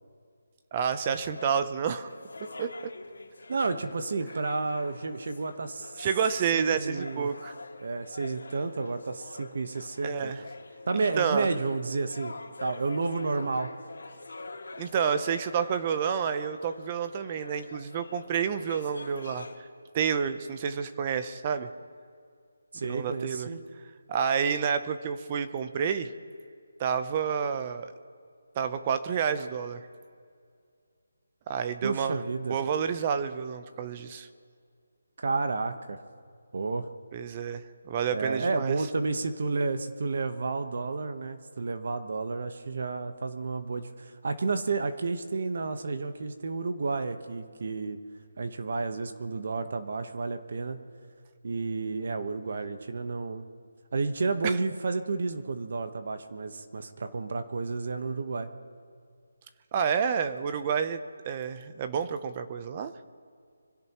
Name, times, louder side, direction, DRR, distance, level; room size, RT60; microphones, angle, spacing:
voice 1, 0.7-2.1 2.6-2.9 6.0-7.5 10.0-10.4 11.2-11.5 14.8-19.5 19.9-21.7 22.8-23.5 24.1-26.1 26.8-27.9 28.6-29.8 31.5-32.2 32.5-34.3 37.1-38.8 54.4-54.5 59.7-61.0 61.3-62.9, right 7 dB, 25° right, 10 dB, 0.7 m, -29 dB
sound 1, 0.9-19.6, left 3 dB, 85° left, 2.3 m, -46 dB
voice 2, 3.5-6.1 6.5-7.3 7.8-10.3 10.9-12.3 12.6-13.7 22.7-23.6 31.8-32.6 35.2-36.0 36.5-36.9 38.1-48.0 48.4-50.8 51.4-53.4 53.9-58.5, right 3 dB, 50° right, 8 dB, 1.1 m, -31 dB
25.5 x 16.5 x 3.0 m, 2.2 s
hypercardioid pair, 170°, 0 cm